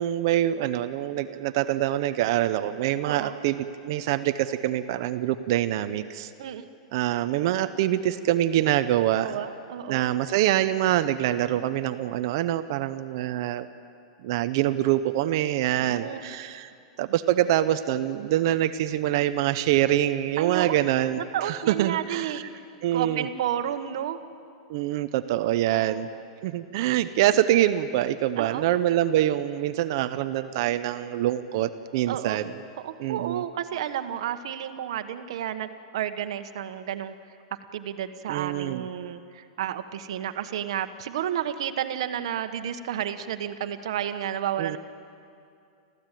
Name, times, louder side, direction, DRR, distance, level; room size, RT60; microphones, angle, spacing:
voice 1, 0.0-6.3 6.9-9.4 9.9-13.7 14.2-16.7 17.0-22.4 22.8-23.3 24.7-26.1 26.4-32.5 33.0-33.4 38.3-38.8 44.6-44.8, right 13 dB, 45° right, 11 dB, 0.7 m, -25 dB
voice 2, 3.0-3.4 6.4-6.6 9.2-10.1 15.7-16.2 20.4-20.8 21.2-22.4 22.9-24.2 25.7-26.1 28.4-28.7 32.1-32.4 32.8-37.1 37.7-44.8, right 10 dB, 60° right, 8 dB, 1.2 m, -31 dB
26.0 x 15.0 x 9.2 m, 2.5 s
supercardioid pair, 175°, 3 cm